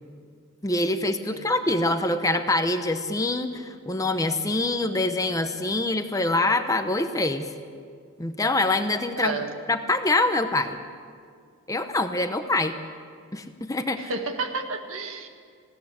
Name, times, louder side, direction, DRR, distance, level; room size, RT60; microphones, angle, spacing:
voice 1, 0.6-7.5 8.2-9.4 9.7-10.8 11.7-12.7 13.3-14.1, left 2 dB, 15° left, 8 dB, 0.8 m, -25 dB
voice 2, 1.3-1.7 9.1-9.5 14.0-15.3, right 3 dB, 70° right, 5 dB, 1.8 m, -31 dB
21.0 x 16.5 x 8.1 m, 2.1 s
head